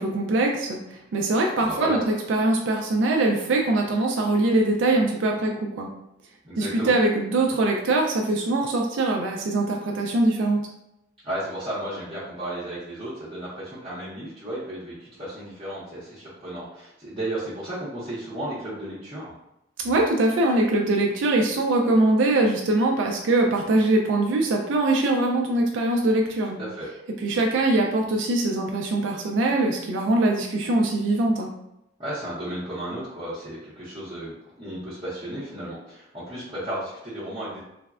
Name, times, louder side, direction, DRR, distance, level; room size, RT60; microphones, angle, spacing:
voice 1, 0.0-5.9 6.6-10.6 19.8-26.6 27.2-31.5, right 2 dB, 70° right, 1 dB, 0.3 m, -22 dB
voice 2, 1.6-2.0 6.4-6.9 11.2-19.3 26.6-26.9 32.0-37.6, right 1 dB, 30° right, -12 dB, 0.7 m, -34 dB
3.2 x 2.1 x 2.3 m, 0.86 s
head